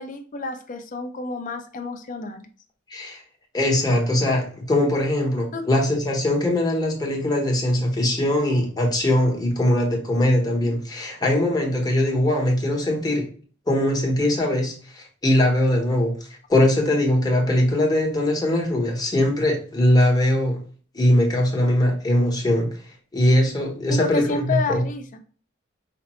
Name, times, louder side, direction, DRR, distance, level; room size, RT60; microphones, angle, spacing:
voice 1, 0.0-2.5 5.5-5.6 23.9-25.0, left 3 dB, 40° left, 7 dB, 0.5 m, -29 dB
voice 2, 2.9-3.2 3.5-13.3 13.7-16.2 16.5-20.6 20.9-22.8 23.1-24.9, left 1 dB, 20° left, -1 dB, 0.9 m, -21 dB
5.0 x 2.0 x 3.0 m, 0.43 s
head